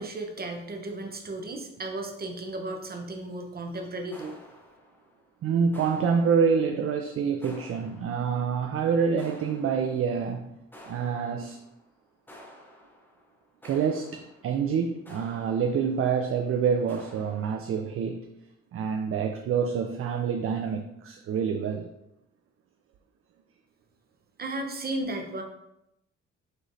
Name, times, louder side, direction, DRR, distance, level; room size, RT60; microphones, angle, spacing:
voice 1, 0.0-4.4 24.4-25.4, right 2 dB, 30° right, 3 dB, 0.9 m, -34 dB
sound 1, 4.1-5.4 5.7-7.0 7.4-8.6 9.2-10.4 10.7-11.9 12.3-16.2 16.9-17.5, left 1 dB, 5° left, 0.8 m, -51 dB
voice 2, 5.4-10.5 10.9-11.6 13.6-18.2 18.7-21.9, right 6 dB, 50° right, 5 dB, 0.4 m, -27 dB
6.3 x 3.1 x 2.6 m, 0.85 s
cardioid pair, 90°, 30 cm